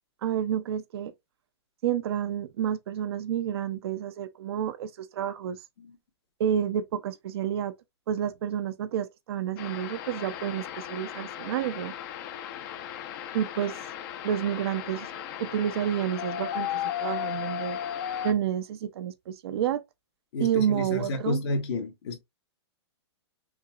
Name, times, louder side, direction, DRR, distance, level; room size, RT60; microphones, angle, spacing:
voice 1, 0.2-1.1 1.8-5.6 6.4-7.7 8.1-11.9 13.3-13.8 14.2-15.1 15.4-17.8 18.2-19.8 20.4-21.4, right 10 dB, 60° right, 0.7 m, -29 dB
sound 1, 9.6-18.3, left 10 dB, 45° left, 0.8 m, -35 dB
voice 2, 20.3-22.2, left 2 dB, 65° left, 1.5 m, -31 dB
5.6 x 2.9 x 2.4 m
hypercardioid pair, 135°, 15 cm